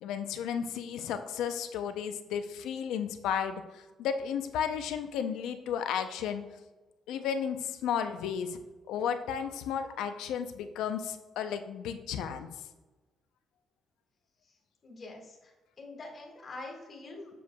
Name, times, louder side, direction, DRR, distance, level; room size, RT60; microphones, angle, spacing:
voice 1, 0.0-6.4 7.1-8.6 8.9-12.5, left 8 dB, 90° left, 8 dB, 0.5 m, -33 dB
voice 2, 14.8-15.4 15.8-17.3, left 2 dB, 45° left, 0 dB, 1.7 m, -44 dB
7.6 x 6.5 x 2.3 m, 1.2 s
cardioid pair, 90°, 0 cm